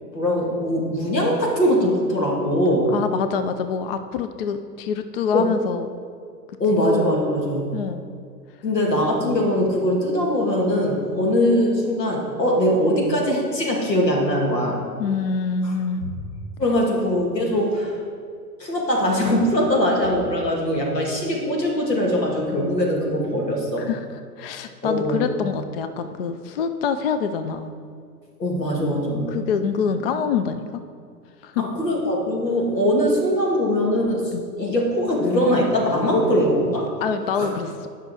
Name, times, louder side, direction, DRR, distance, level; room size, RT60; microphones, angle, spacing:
voice 1, 0.1-2.9 5.3-5.5 6.6-7.7 8.6-14.8 15.6-15.7 16.0-16.1 16.6-18.0 18.6-23.9 24.8-25.3 28.4-29.3 31.6-34.3 34.6-36.9 37.3-37.5, equal, 85° left, -2 dB, 2.2 m, -21 dB
voice 2, 2.9-5.9 7.7-8.0 15.0-16.0 23.8-24.1 24.4-27.7 29.3-30.8 31.4-31.6 34.3-34.4 37.0-37.7, left 6 dB, 40° left, 9 dB, 0.4 m, -25 dB
9.6 x 5.7 x 4.8 m, 2.2 s
figure-of-eight pair, 110°, 48 cm